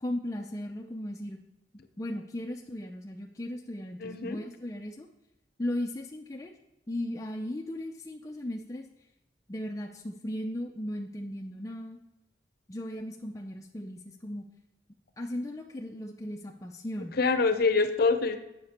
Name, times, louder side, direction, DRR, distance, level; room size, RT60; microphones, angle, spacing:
voice 1, 0.0-1.4 2.0-5.1 5.6-6.5 6.9-8.9 9.5-12.0 12.7-14.4 15.2-17.2, left 1 dB, 20° left, 1 dB, 0.4 m, -36 dB
voice 2, 4.0-4.4 17.2-18.4, left 4 dB, 55° left, 9 dB, 0.6 m, -25 dB
8.0 x 5.8 x 4.2 m, 0.97 s
head